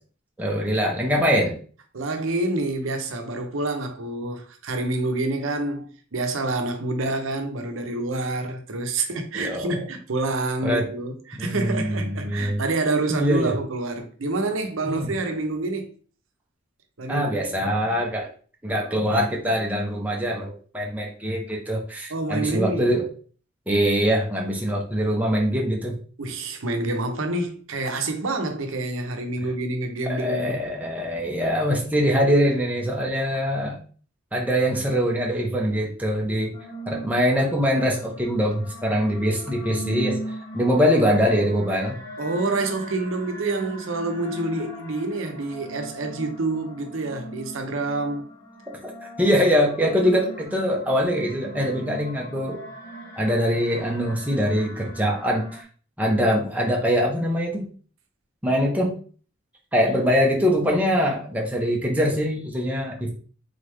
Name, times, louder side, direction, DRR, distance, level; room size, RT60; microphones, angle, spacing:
voice 1, 0.4-1.6 9.3-9.7 10.6-10.9 11.3-12.6 13.1-13.5 14.9-15.1 17.1-18.3 18.6-23.1 23.7-25.9 30.1-33.8 34.3-36.5 36.9-40.2 40.5-42.0 49.2-52.6 53.2-55.6 56.0-57.7 58.4-58.9 59.7-63.1, equal, 10° right, 0.8 m, -23 dB
voice 2, 1.9-15.9 17.0-17.3 17.6-17.7 22.1-22.9 26.2-30.6 42.2-48.3, right 2 dB, 80° right, 0.7 m, -27 dB
sound 1, 36.5-55.6, right 1 dB, 45° left, 1.4 m, -39 dB
3.9 x 3.4 x 3.2 m
head